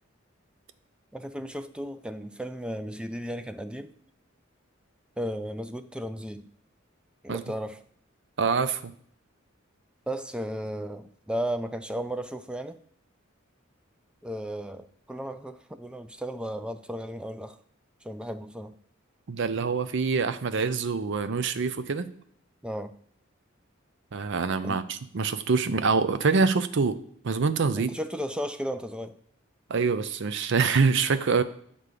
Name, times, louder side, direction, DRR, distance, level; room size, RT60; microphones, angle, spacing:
voice 1, 1.1-3.9 5.2-6.4 7.2-7.8 10.1-12.8 14.2-17.6 18.0-18.7 22.6-22.9 24.6-24.8 27.8-29.1, equal, 5° right, 10 dB, 0.3 m, -34 dB
voice 2, 8.4-8.9 19.3-22.1 24.1-27.0 27.2-27.9 29.7-31.4, right 4 dB, 65° right, 12 dB, 0.5 m, -25 dB
8.2 x 3.7 x 6.6 m, 0.62 s
head